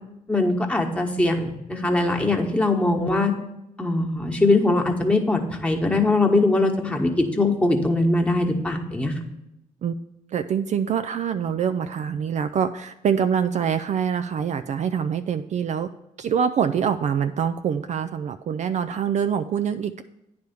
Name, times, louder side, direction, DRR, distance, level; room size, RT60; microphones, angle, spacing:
voice 1, 0.3-3.3 3.8-9.1, left 2 dB, 10° left, 1 dB, 1.3 m, -21 dB
voice 2, 10.3-15.9 16.2-20.0, right 7 dB, 50° right, 9 dB, 0.4 m, -25 dB
9.2 x 3.4 x 6.8 m, 0.86 s
supercardioid pair, 60°, 16 cm